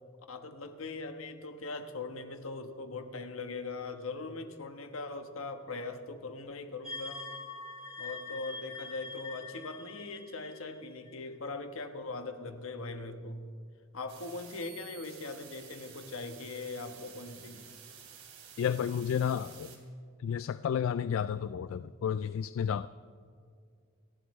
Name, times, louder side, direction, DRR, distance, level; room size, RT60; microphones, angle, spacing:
voice 1, 0.3-7.2 8.0-13.5 13.9-17.7, left 3 dB, 85° left, 7 dB, 1.2 m, -40 dB
sound 1, 6.8-11.3, left 3 dB, 30° left, 4.0 m, -44 dB
sound 2, 14.1-19.8, right 8 dB, 75° right, 2.9 m, -52 dB
voice 2, 18.6-19.8 20.2-22.9, left 8 dB, 70° left, 14 dB, 0.3 m, -31 dB
29.5 x 11.5 x 3.2 m, 2.3 s
head